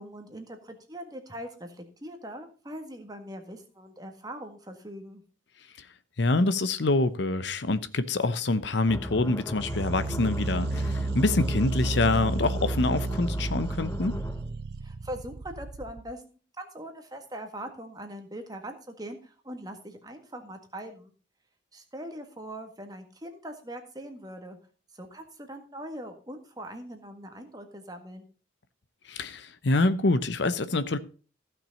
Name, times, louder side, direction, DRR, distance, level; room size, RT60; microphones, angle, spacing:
voice 1, 0.0-5.2 14.8-21.1 21.7-24.6 24.9-28.3, right 1 dB, 20° right, 1.7 m, -41 dB
voice 2, 6.2-14.2 29.0-31.0, left 2 dB, 65° left, 0.8 m, -26 dB
sound 1, 8.9-14.5, left 1 dB, 15° left, 0.6 m, -37 dB
sound 2, 9.6-16.1, right 2 dB, 55° right, 0.5 m, -32 dB
15.0 x 6.0 x 5.3 m
head